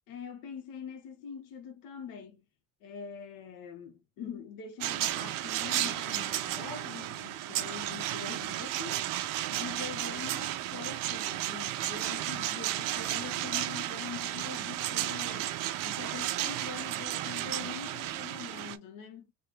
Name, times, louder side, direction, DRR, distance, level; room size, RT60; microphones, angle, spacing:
voice 1, 0.1-2.4 2.8-9.0 9.3-19.3, left 7 dB, 90° left, 0.8 m, -44 dB
sound 1, 4.8-18.8, right 14 dB, 80° right, 0.5 m, -33 dB
3.4 x 2.1 x 2.9 m
cardioid pair, 110°, 33 cm